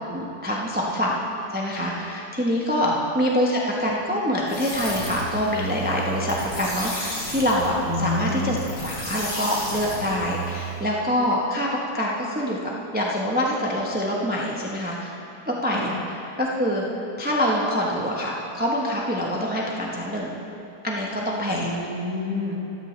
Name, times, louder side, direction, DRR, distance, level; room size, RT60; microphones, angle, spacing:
voice 1, 0.1-1.2 1.5-8.6 8.8-15.1 15.5-15.9 16.4-16.8 17.2-20.3 20.8-21.7, equal, 5° right, -3 dB, 0.8 m, -25 dB
sound 1, 4.5-10.8, right 2 dB, 60° left, 3.3 m, -32 dB
voice 2, 7.8-8.6 15.7-15.9 21.5-22.5, left 3 dB, 45° left, -3 dB, 2.1 m, -29 dB
14.0 x 13.5 x 3.3 m, 2.7 s
omnidirectional pair, 1.9 m